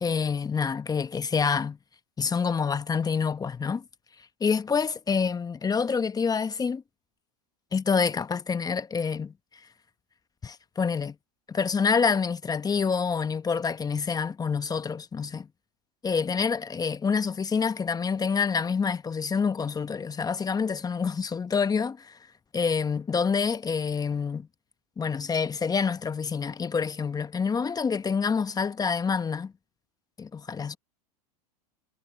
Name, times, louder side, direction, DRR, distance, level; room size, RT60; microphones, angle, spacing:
voice 1, 0.0-1.8 2.2-3.8 4.4-6.8 7.7-9.3 10.4-11.1 11.5-15.5 16.0-22.2 22.5-24.5 25.0-29.5 30.2-30.8, left 5 dB, 20° left, 1.2 m, -27 dB
hypercardioid pair, 95°, 20 cm